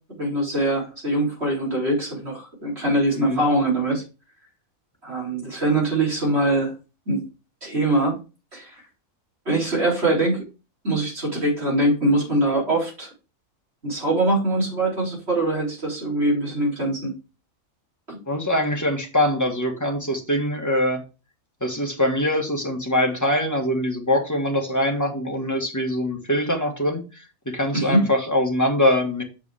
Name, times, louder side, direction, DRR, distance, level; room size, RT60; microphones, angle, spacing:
voice 1, 0.2-4.0 5.0-6.7 7.1-7.2 7.6-8.2 8.5-8.8 9.5-10.4 10.8-13.1 13.8-17.1 18.1-18.2 27.7-28.0, right 1 dB, 50° right, -3 dB, 4.4 m, -23 dB
voice 2, 3.1-3.5 18.3-21.0 21.6-29.2, left 1 dB, 10° left, 1 dB, 1.7 m, -23 dB
7.4 x 5.2 x 4.9 m, 0.31 s
omnidirectional pair, 1.5 m